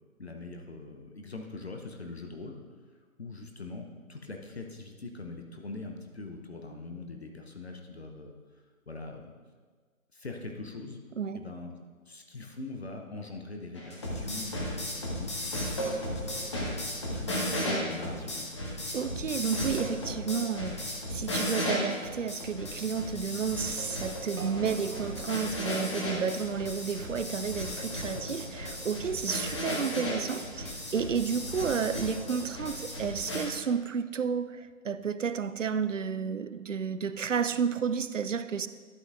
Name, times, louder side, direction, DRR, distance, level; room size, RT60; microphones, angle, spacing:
voice 1, 0.2-2.6 3.2-8.3 8.9-9.3 10.1-11.0 11.3-11.8 12.1-16.6 17.1-18.5 28.1-28.5, left 3 dB, 50° left, 0.8 m, -42 dB
sound 1, 13.7-33.4, left 1 dB, 20° left, 1.0 m, -35 dB
voice 2, 18.9-38.7, right 6 dB, 60° right, 0.5 m, -31 dB
sound 2, 24.4-28.5, right 3 dB, 85° right, 1.0 m, -47 dB
12.0 x 7.9 x 2.6 m
figure-of-eight pair, 150°, 42 cm